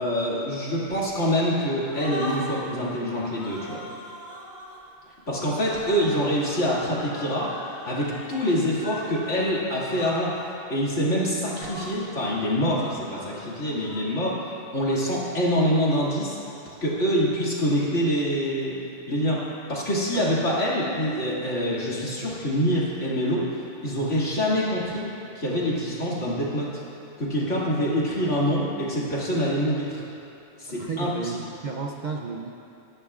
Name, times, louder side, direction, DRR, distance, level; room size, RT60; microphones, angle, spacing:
voice 1, 0.0-3.8 5.3-7.5 7.9-10.3 10.7-16.4 16.8-18.8 19.1-19.4 19.7-25.1 25.3-26.8 27.2-30.0 30.6-31.4, equal, 70° left, -6 dB, 2.7 m, -25 dB
sound 1, 0.8-1.5 1.8-2.7 3.3-4.8 5.6-9.2 9.4-9.6 9.8-10.6 11.4-12.0 12.6-14.0, equal, 15° left, 1.8 m, -40 dB
voice 2, 30.7-32.5, right 4 dB, 50° right, 1 dB, 0.6 m, -33 dB
21.5 x 11.0 x 2.4 m, 2.7 s
omnidirectional pair, 1.3 m